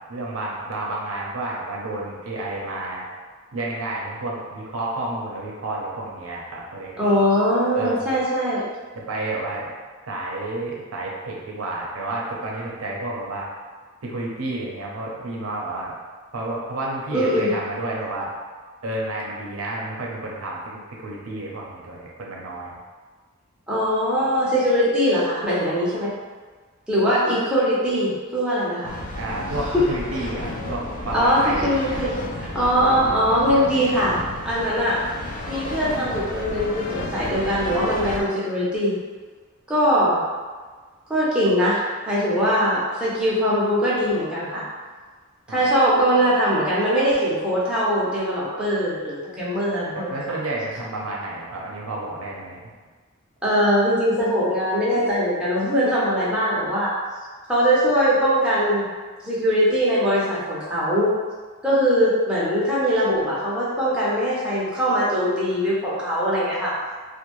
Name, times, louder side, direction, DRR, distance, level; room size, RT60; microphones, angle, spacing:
voice 1, 0.1-3.0 3.5-7.0 7.6-8.0 8.9-9.7 10.1-13.5 14.0-15.9 16.3-18.3 18.8-22.8 29.2-32.1 45.5-45.7 50.1-52.7, right 2 dB, 85° right, -3 dB, 0.5 m, -30 dB
voice 2, 7.0-8.6 17.1-17.5 23.7-26.1 26.9-28.9 29.7-29.8 31.1-32.1 32.5-34.1 34.4-35.0 35.5-39.0 39.7-40.2 41.1-44.6 45.5-50.2 53.4-56.9 57.5-58.9 59.2-61.2 61.6-66.9, equal, 5° right, -9 dB, 0.7 m, -21 dB
sound 1, 28.8-38.2, left 1 dB, 40° left, 0.3 m, -32 dB
2.6 x 2.1 x 3.0 m, 1.4 s
head